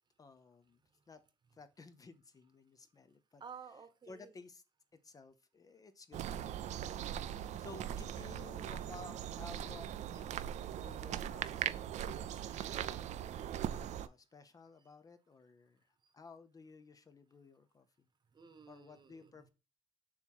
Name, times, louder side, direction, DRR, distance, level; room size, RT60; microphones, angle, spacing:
voice 1, 0.2-0.8 1.1-1.2 1.5-3.4 4.1-4.6 5.0-6.3 7.2-10.5 10.8-15.9 16.1-17.9 18.7-19.5, left 3 dB, 30° left, 10 dB, 0.6 m, -55 dB
voice 2, 3.4-4.3 12.3-12.9 16.0-16.1 18.3-19.5, right 6 dB, 35° right, 10 dB, 1.0 m, -54 dB
sound 1, 6.1-14.1, right 10 dB, 75° right, 0.5 m, -40 dB
7.2 x 3.0 x 4.5 m, 0.30 s
cardioid pair, 130°, 12 cm